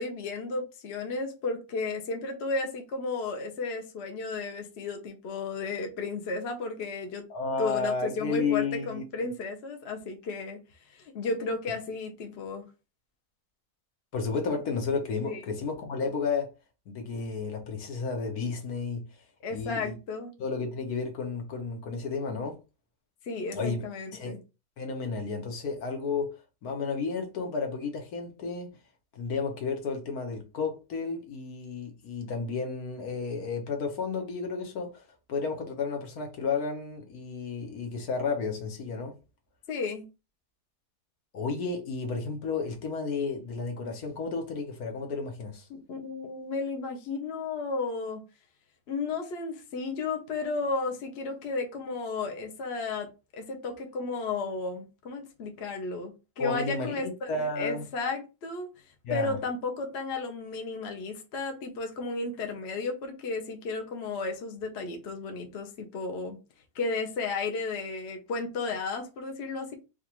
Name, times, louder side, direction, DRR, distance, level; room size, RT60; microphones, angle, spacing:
voice 1, 0.0-7.3 7.6-10.6 10.9-12.7 15.2-15.4 19.4-20.3 23.2-24.4 39.7-40.1 45.9-48.2 48.9-53.1 53.3-58.7 59.1-66.4 66.7-69.8, left 3 dB, 50° left, 0.9 m, -33 dB
voice 2, 7.3-9.0 14.1-16.5 16.9-19.1 19.5-20.0 20.4-22.6 23.5-23.8 24.1-24.4 24.8-26.3 26.6-28.7 29.1-39.2 41.3-45.7 56.4-57.0 57.3-57.8 59.0-59.4, left 4 dB, 70° left, 1.4 m, -32 dB
5.0 x 2.5 x 2.9 m
omnidirectional pair, 1.7 m